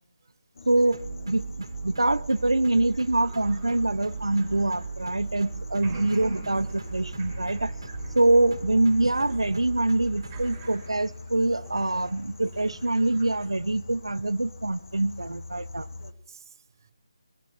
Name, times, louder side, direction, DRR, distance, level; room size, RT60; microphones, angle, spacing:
sound 1, 0.5-16.1, left 3 dB, 45° left, 1.0 m, -44 dB
voice 1, 0.7-1.4 1.8-7.7 8.1-15.9, right 2 dB, 85° right, 0.4 m, -24 dB
sound 2, 0.9-10.6, right 4 dB, 55° right, 1.1 m, -38 dB
sound 3, 2.4-5.4 5.7-13.5, right 3 dB, 10° right, 6.3 m, -49 dB
voice 2, 16.0-16.9, right 6 dB, 35° right, 1.8 m, -50 dB
22.5 x 9.3 x 5.9 m
figure-of-eight pair, 155°, 3 cm